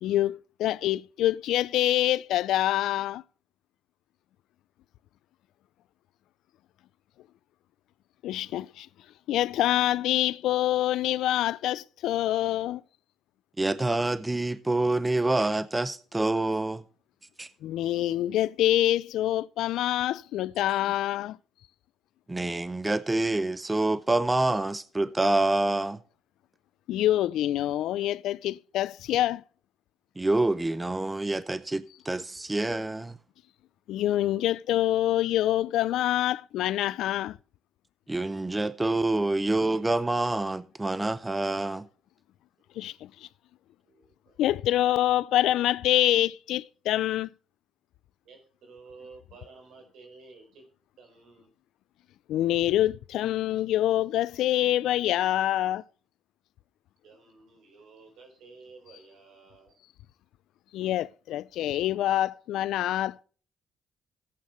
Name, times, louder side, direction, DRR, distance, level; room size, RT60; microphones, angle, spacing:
voice 1, 0.0-3.2 8.2-8.9 9.3-12.8 17.6-21.4 26.9-29.4 33.9-37.4 42.8-43.3 44.4-47.3 52.3-55.8 60.7-63.2, left 13 dB, 85° left, 0.4 m, -26 dB
voice 2, 13.6-16.8 17.4-17.5 22.3-26.0 30.2-33.2 38.1-41.9, right 2 dB, 15° right, 0.6 m, -27 dB
voice 3, 43.8-44.4 48.2-50.6 51.0-51.5 57.0-59.7, right 4 dB, 80° right, 4.4 m, -52 dB
16.5 x 8.6 x 3.1 m
cardioid pair, 90°, 0 cm